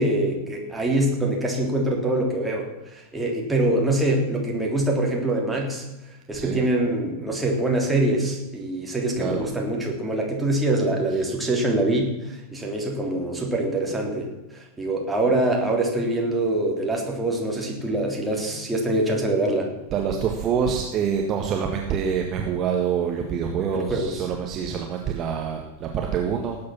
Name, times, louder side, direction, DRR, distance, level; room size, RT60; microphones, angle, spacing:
voice 1, 0.0-2.7 2.9-5.8 6.3-19.7 23.7-24.1, right 1 dB, 5° right, -1 dB, 3.5 m, -24 dB
voice 2, 19.9-26.6, right 7 dB, 30° right, 2 dB, 1.7 m, -26 dB
18.5 x 8.6 x 6.0 m, 1.0 s
figure-of-eight pair, 90°, 0 cm